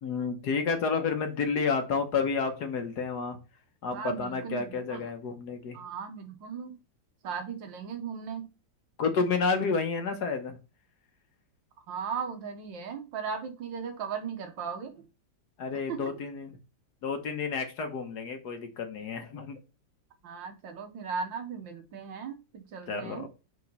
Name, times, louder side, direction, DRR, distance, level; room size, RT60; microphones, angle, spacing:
voice 1, 0.0-3.4 3.8-5.8 9.0-10.6 15.6-16.6 17.0-19.6 22.9-23.3, left 5 dB, 60° left, 6 dB, 1.5 m, -30 dB
voice 2, 3.9-5.1 5.7-6.8 7.2-8.5 11.9-15.1 15.9-16.1 20.2-23.3, right 6 dB, 80° right, 5 dB, 1.7 m, -37 dB
4.9 x 3.8 x 5.3 m, 0.30 s
omnidirectional pair, 2.0 m